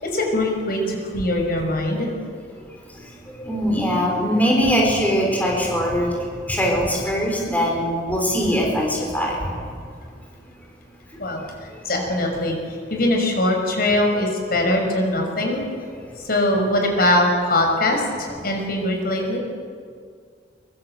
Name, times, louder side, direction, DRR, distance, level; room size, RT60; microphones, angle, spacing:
voice 1, 0.0-2.1 11.2-12.6 12.9-15.6 16.2-19.4, left 1 dB, 55° left, 2 dB, 6.0 m, -22 dB
voice 2, 3.3-6.1 6.5-9.5, equal, 10° left, -1 dB, 5.2 m, -21 dB
25.5 x 24.0 x 8.0 m, 2.1 s
head